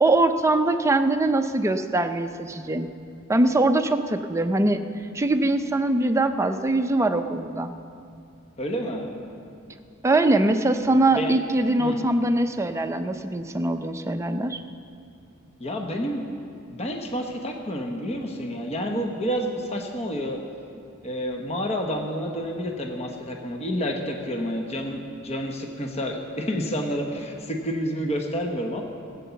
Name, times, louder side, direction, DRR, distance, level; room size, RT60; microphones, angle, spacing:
voice 1, 0.0-2.9 3.3-4.8 5.1-7.7 10.0-14.6, right 2 dB, 15° right, 7 dB, 0.5 m, -22 dB
voice 2, 8.6-9.1 11.1-11.3 11.8-12.1 15.6-16.2 16.7-20.4 21.0-28.8, equal, 30° left, 2 dB, 1.0 m, -29 dB
14.0 x 8.4 x 7.0 m, 2.5 s
head